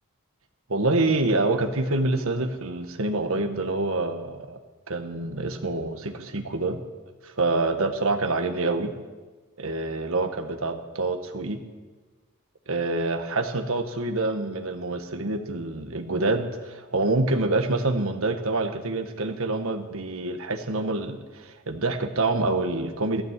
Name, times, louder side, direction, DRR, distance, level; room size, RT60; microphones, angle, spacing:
voice 1, 0.7-4.6 4.9-6.8 7.2-8.9 9.6-11.6 12.7-23.2, right 2 dB, 65° right, 5 dB, 1.3 m, -26 dB
15.0 x 13.0 x 7.4 m, 1.3 s
head